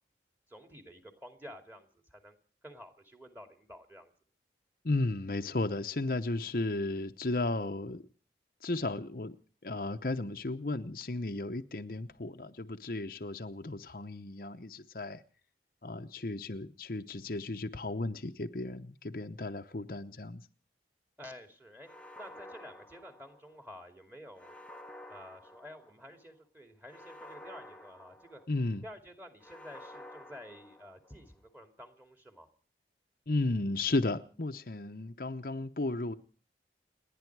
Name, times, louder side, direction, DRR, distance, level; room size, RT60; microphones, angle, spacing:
voice 1, 0.5-2.4 2.6-4.1 21.2-21.9 22.2-24.5 25.1-28.4 28.8-32.5, equal, 10° right, 2.5 m, -50 dB
voice 2, 4.8-8.0 8.6-9.4 9.6-15.2 15.8-20.4 28.5-28.8 33.3-36.1, left 2 dB, 50° left, 0.8 m, -34 dB
sound 1, 21.8-23.7 24.4-26.2 26.9-28.8 29.4-31.3, left 1 dB, 5° left, 0.9 m, -51 dB
30.0 x 10.5 x 4.7 m
head